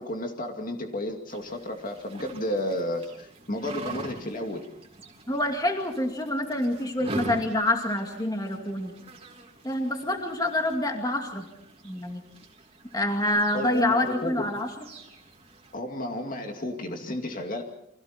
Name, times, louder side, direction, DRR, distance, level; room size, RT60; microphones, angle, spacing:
voice 1, 0.0-4.7 13.5-14.5 15.7-17.6, left 1 dB, 40° left, 3 dB, 2.3 m, -32 dB
sound 1, 1.3-15.8, right 2 dB, 30° right, 3.1 m, -44 dB
voice 2, 5.3-8.9 9.6-11.5 11.8-12.2 12.9-14.7, left 1 dB, 20° left, 3 dB, 2.4 m, -27 dB
30.0 x 24.5 x 4.4 m, 0.76 s
head